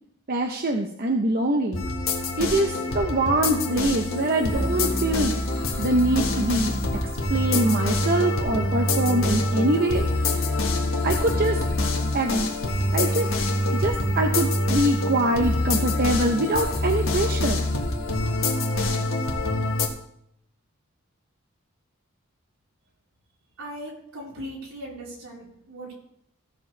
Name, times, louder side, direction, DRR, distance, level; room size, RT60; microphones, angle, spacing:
voice 1, 0.3-1.8 2.4-5.4 5.8-6.7 7.3-10.4 11.0-11.6 12.1-12.5 12.9-13.3 13.7-17.7, right 1 dB, 45° right, 3 dB, 0.8 m, -24 dB
sound 1, 1.7-19.9, left 2 dB, 65° left, 1.6 m, -25 dB
voice 2, 23.6-25.9, equal, 75° right, -4 dB, 4.0 m, -38 dB
15.5 x 7.0 x 3.3 m, 0.73 s
head